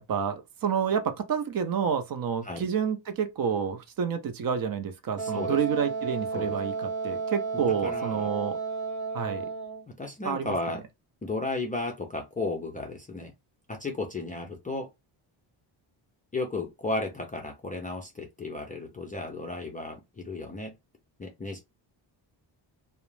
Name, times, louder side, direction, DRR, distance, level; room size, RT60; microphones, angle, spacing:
voice 1, 0.0-8.6 9.1-9.5 10.2-10.5, right 7 dB, 50° right, 0.5 m, -29 dB
voice 2, 5.2-5.6 6.3-6.5 7.5-8.3 10.0-10.8 11.2-13.3 13.7-14.9 16.3-20.7 21.2-21.6, left 2 dB, 20° left, 0.3 m, -34 dB
Wind instrument woodwind instrument, 5.2-9.9, right 4 dB, 65° right, 1.1 m, -32 dB
2.4 x 2.0 x 3.0 m
cardioid pair, 130°, 48 cm